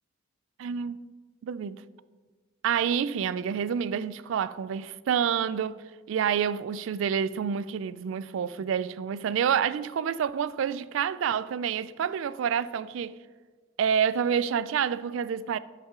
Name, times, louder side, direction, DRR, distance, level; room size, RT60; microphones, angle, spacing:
voice 1, 0.6-1.0 1.4-1.8 2.6-5.8 6.1-13.2 13.8-15.6, right 7 dB, 65° right, 0.3 m, -28 dB
11.0 x 5.8 x 3.6 m
head